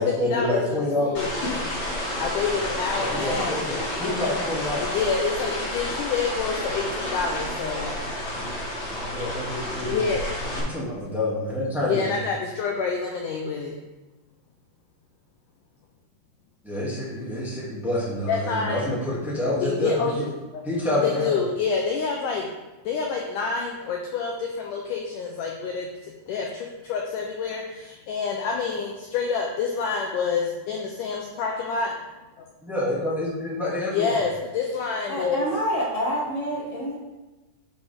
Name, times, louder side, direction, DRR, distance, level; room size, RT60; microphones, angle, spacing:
voice 1, 0.0-1.2 2.9-4.9 9.0-10.2 10.5-12.2 16.6-20.2 20.6-21.4 32.6-34.2, left 1 dB, ahead, -7 dB, 1.3 m, -27 dB
voice 2, 1.0-1.8 2.2-3.6 4.8-8.0 9.9-10.2 11.8-13.8 18.3-18.8 19.6-20.6 21.0-22.5 22.8-31.9 33.9-35.5, left 5 dB, 85° left, 1 dB, 1.8 m, -28 dB
sound 1, 1.1-10.6, left 1 dB, 40° left, 2.7 m, -30 dB
voice 3, 35.1-37.0, equal, 20° right, -6 dB, 1.1 m, -27 dB
12.0 x 5.4 x 3.6 m, 1.1 s
omnidirectional pair, 4.6 m